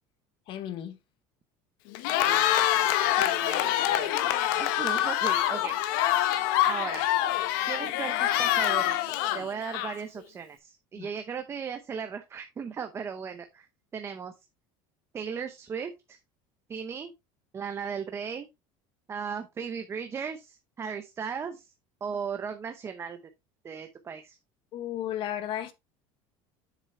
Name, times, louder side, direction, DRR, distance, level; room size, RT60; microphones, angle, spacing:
voice 1, 0.5-1.0 11.0-11.1 24.7-25.7, left 11 dB, 50° left, 1.2 m, -34 dB
Cheering, 1.9-10.2, left 13 dB, 80° left, 1.0 m, -26 dB
voice 2, 2.2-5.8 6.2-6.3 6.6-7.1 7.6-13.7 13.9-14.3 15.1-16.2 16.7-17.1 17.5-18.5 19.1-21.7 22.0-23.2 23.6-24.4, right 6 dB, 25° right, 0.8 m, -37 dB
7.6 x 6.7 x 3.1 m
cardioid pair, 145°, 11 cm